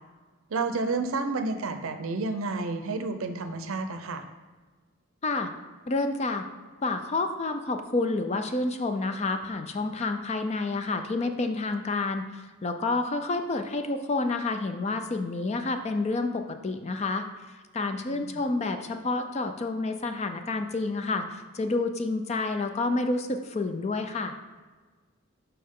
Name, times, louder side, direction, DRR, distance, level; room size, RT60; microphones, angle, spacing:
voice 1, 0.5-4.2 18.1-18.4, right 3 dB, 65° right, 8 dB, 0.6 m, -30 dB
voice 2, 5.9-6.5 6.8-24.4, left 3 dB, 30° left, 7 dB, 0.4 m, -29 dB
6.5 x 5.5 x 3.6 m, 1.4 s
head